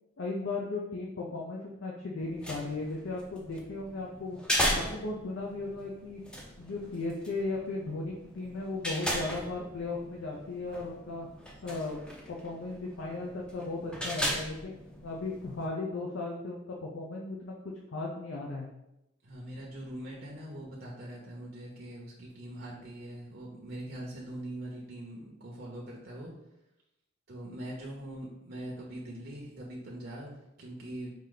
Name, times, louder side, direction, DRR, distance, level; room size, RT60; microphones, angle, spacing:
voice 1, 0.2-4.4 4.7-6.2 6.6-11.3 11.6-12.0 12.3-17.5 17.9-18.7, left 3 dB, 80° left, -2 dB, 0.6 m, -36 dB
sound 1, 2.2-15.7, equal, 5° left, 0.5 m, -37 dB
voice 2, 19.2-26.3 27.3-31.2, right 1 dB, 50° right, -3 dB, 0.8 m, -42 dB
4.8 x 2.8 x 3.9 m, 0.89 s
head